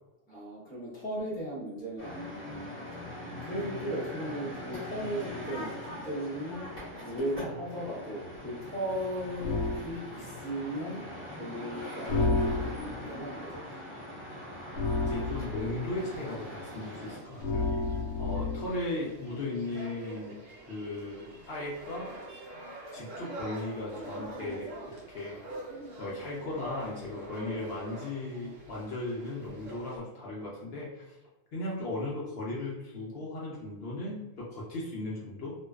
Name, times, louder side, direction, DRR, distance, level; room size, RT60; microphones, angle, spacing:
voice 1, 0.3-2.8 3.4-6.7 7.0-11.0 11.3-13.7, equal, 10° left, -6 dB, 0.4 m, -37 dB
sound 1, 2.0-17.2, equal, 10° right, 1.1 m, -42 dB
sound 2, 9.4-9.8 12.1-13.0 14.7-15.8 17.4-18.8, left 3 dB, 85° left, 1.0 m, -30 dB
voice 2, 15.0-17.7 18.2-20.3 20.7-22.1 22.9-25.5 26.0-31.2 31.5-35.5, left 2 dB, 60° left, -5 dB, 0.7 m, -37 dB
sound 3, 16.0-30.0, right 2 dB, 80° right, 1.1 m, -45 dB
2.5 x 2.2 x 2.3 m, 1.0 s
omnidirectional pair, 1.3 m